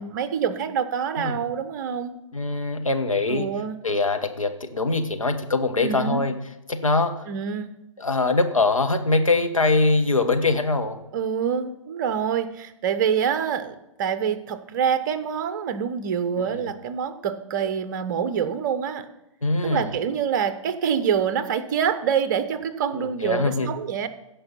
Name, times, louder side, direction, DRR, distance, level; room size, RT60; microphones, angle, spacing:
voice 1, 0.0-2.1 3.3-3.8 5.8-6.2 7.3-7.8 11.1-19.1 19.6-24.1, right 7 dB, 35° right, 12 dB, 0.8 m, -26 dB
voice 2, 2.3-3.5 3.8-6.3 6.7-7.2 8.0-11.0 16.3-16.6 19.4-19.9 22.9-23.7, left 3 dB, 80° left, 5 dB, 1.2 m, -23 dB
15.5 x 5.5 x 5.8 m, 0.94 s
figure-of-eight pair, 125°, 17 cm